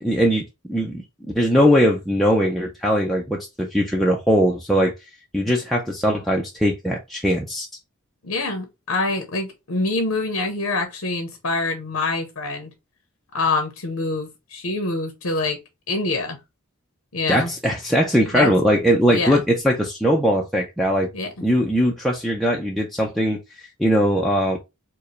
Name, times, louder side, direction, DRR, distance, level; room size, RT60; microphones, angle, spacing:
voice 1, 0.0-4.9 5.3-7.7 17.3-21.1 21.4-23.4 23.8-24.6, equal, ahead, 0.5 m, -20 dB
voice 2, 8.2-12.7 13.3-15.6 15.9-16.4 17.1-17.5 18.3-18.5 19.1-19.4 21.1-21.3, left 2 dB, 85° left, 0.9 m, -25 dB
4.6 x 2.2 x 3.1 m
head